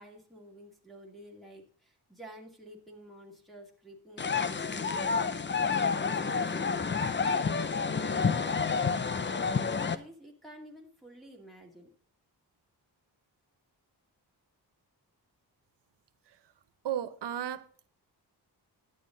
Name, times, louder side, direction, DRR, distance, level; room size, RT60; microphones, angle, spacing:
voice 1, 0.0-5.2 5.8-11.9, right 1 dB, ahead, 2.4 m, -50 dB
sound 1, 4.2-9.9, left 5 dB, 30° left, 0.6 m, -29 dB
voice 2, 16.8-17.9, right 10 dB, 90° right, 0.9 m, -34 dB
10.5 x 9.4 x 3.8 m
wide cardioid pair, 155°, 40 cm